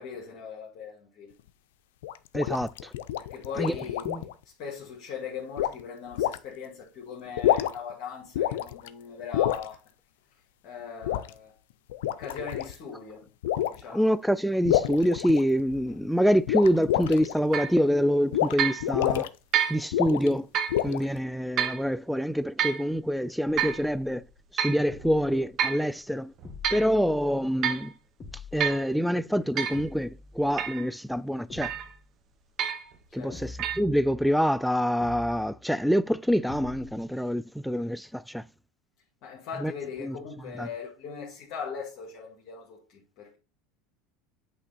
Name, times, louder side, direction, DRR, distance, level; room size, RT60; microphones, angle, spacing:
voice 1, 0.0-1.3 3.3-4.3 4.6-9.8 10.6-11.5 12.2-13.2 13.7-14.1 33.2-33.4 39.2-43.4, left 6 dB, 55° left, 1.8 m, -39 dB
sound 1, 2.0-4.3 5.6-5.8 6.2-6.4 7.3-7.9 8.3-8.9 9.3-9.6 11.0-11.3 11.9-12.7 13.4-13.8 14.6-15.8 16.5-17.3 18.3-18.5 18.8-19.3 19.9-20.3 20.7-21.2, left 12 dB, 85° left, 0.4 m, -27 dB
voice 2, 2.3-2.9 3.6-3.8 4.0-4.3 13.9-19.3 19.7-20.5 20.8-24.2 24.5-26.3 26.7-27.9 28.5-31.7 33.1-38.4 39.6-39.7 40.0-40.2 40.5-40.7, equal, ahead, 0.3 m, -26 dB
sound 2, 17.5-17.8 18.6-18.8 19.5-19.8 20.5-20.8 21.6-21.8 22.6-22.8 23.6-23.8 24.6-24.8 25.6-25.9 26.4-26.9 27.6-27.9 28.6-28.9 29.6-29.8 30.6-30.9 31.6-31.9 32.6-32.9 33.6-33.8, right 9 dB, 45° right, 0.9 m, -28 dB
sound 3, 24.2-24.3 24.9-25.5 26.4-27.5 28.2-28.8 29.7-30.8 31.5-32.1 33.3-34.4 35.0-35.6 36.5-37.1, left 4 dB, 20° left, 1.5 m, -45 dB
8.2 x 3.2 x 4.1 m
supercardioid pair, 120°, 0 cm